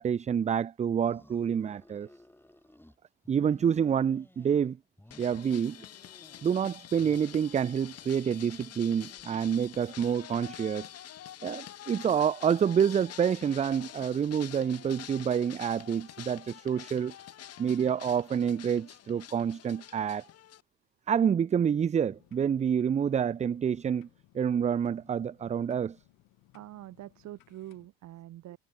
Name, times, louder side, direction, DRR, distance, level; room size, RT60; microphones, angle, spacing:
voice 1, 0.0-2.1 3.3-4.8 5.2-5.8 6.4-10.9 11.4-17.1 17.6-20.3 21.1-24.1 24.3-26.0, right 8 dB, 20° right, 0.3 m, -28 dB
sound 1, 0.9-3.0 3.2-4.7 5.0-6.7 7.0-10.2, left 1 dB, 5° left, 6.1 m, -57 dB
sound 2, 5.1-20.6, left 11 dB, 50° left, 1.0 m, -47 dB
sound 3, 21.9-27.9, left 19 dB, 75° left, 4.2 m, -64 dB
voice 2, 26.5-28.6, right 14 dB, 55° right, 0.9 m, -45 dB
supercardioid pair, 75°, 33 cm